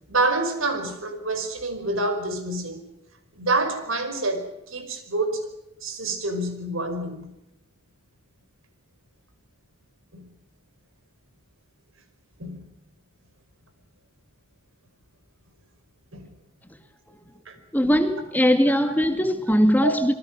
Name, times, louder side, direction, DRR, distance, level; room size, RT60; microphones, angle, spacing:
voice 1, 0.1-2.8 3.3-5.5 5.8-7.4 10.1-10.3 12.4-12.7 16.1-16.3 17.5-17.6 19.8-20.0, right 2 dB, 90° right, 5.3 m, -27 dB
voice 2, 17.7-20.1, equal, 10° left, 2.1 m, -20 dB
27.0 x 23.0 x 6.3 m
head